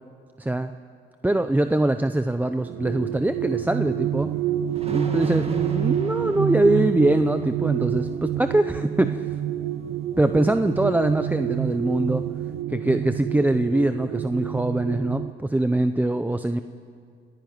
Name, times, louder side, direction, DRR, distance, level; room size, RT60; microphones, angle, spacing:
voice 1, 0.4-0.7 1.2-4.3 4.9-9.3 10.2-12.2 12.7-16.6, right 1 dB, 10° right, 9 dB, 0.7 m, -23 dB
sound 1, 2.5-15.3, right 11 dB, 75° right, 0.6 m, -28 dB
sound 2, 3.3-3.5 4.7-12.6, right 3 dB, 30° right, 2.1 m, -44 dB
26.5 x 14.5 x 9.4 m, 2.3 s
cardioid pair, 90°, 20 cm